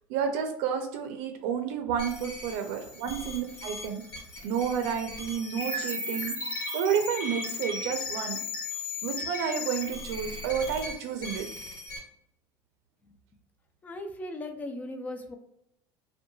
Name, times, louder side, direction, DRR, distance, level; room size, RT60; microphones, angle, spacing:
voice 1, 0.1-4.0 4.4-6.4 6.7-8.4 9.0-11.5, right 7 dB, 90° right, 5 dB, 0.4 m, -30 dB
sound 1, 2.0-12.0, left 2 dB, 50° left, 1.1 m, -36 dB
voice 2, 13.8-15.4, left 1 dB, 15° left, 6 dB, 0.3 m, -37 dB
2.7 x 2.1 x 2.6 m, 0.77 s
cardioid pair, 160°, 9 cm